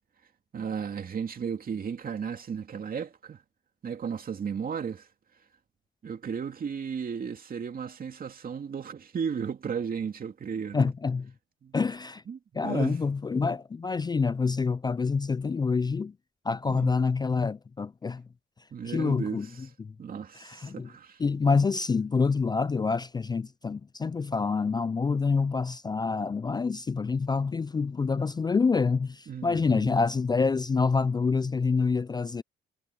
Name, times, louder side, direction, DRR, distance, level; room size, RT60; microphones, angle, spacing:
voice 1, 0.5-3.4 3.8-5.1 6.0-10.9 11.6-11.7 12.3-13.0 16.7-16.9 18.7-19.5 20.0-21.2 29.3-30.0, right 7 dB, 45° right, 2.7 m, -34 dB
voice 2, 10.7-11.3 11.7-12.2 12.5-16.1 16.4-18.2 18.8-19.5 19.8-19.9 20.4-20.9 21.2-32.4, left 4 dB, 20° left, 0.4 m, -27 dB
cardioid pair, 90°, 20 cm